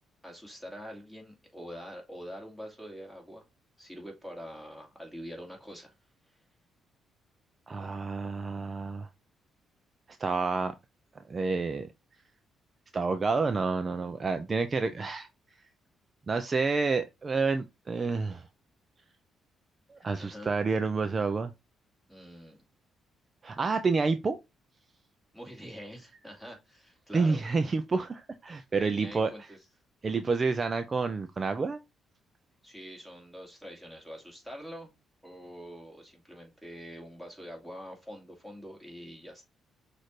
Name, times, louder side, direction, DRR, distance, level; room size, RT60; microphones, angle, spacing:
voice 1, 0.2-3.5 3.8-5.9 6.2-6.4 20.0-20.5 22.1-22.6 25.3-27.4 28.7-29.6 32.6-34.9 35.2-39.4, equal, ahead, 2.3 m, -45 dB
voice 2, 7.7-9.1 10.2-10.7 11.3-11.9 12.9-15.3 16.3-18.4 19.9-21.5 23.4-24.4 27.1-29.3 30.0-31.8, right 4 dB, 35° right, 0.4 m, -29 dB
6.3 x 2.6 x 3.1 m
cardioid pair, 90°, 0 cm